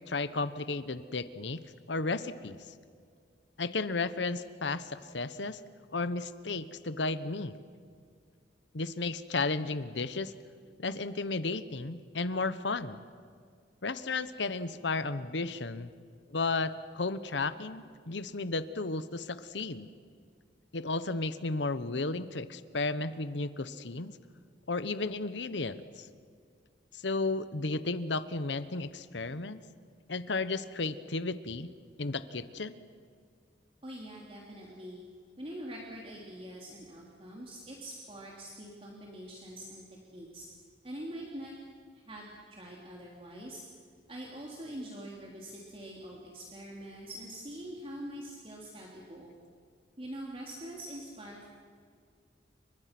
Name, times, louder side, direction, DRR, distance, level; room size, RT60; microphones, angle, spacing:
voice 1, 0.1-1.6 1.9-2.6 3.6-5.6 5.9-7.6 8.7-10.3 10.8-13.0 13.8-15.9 16.3-19.9 20.7-24.2 24.7-26.1 26.9-29.6 30.1-31.7 32.0-32.8, left 3 dB, 80° left, 13 dB, 1.1 m, -33 dB
voice 2, 33.8-35.0 35.4-39.8 40.1-40.4 40.8-41.5 41.9-43.6 44.1-49.3 50.0-51.5, right 1 dB, 30° right, -2 dB, 3.2 m, -44 dB
29.5 x 24.5 x 6.1 m, 2.1 s
head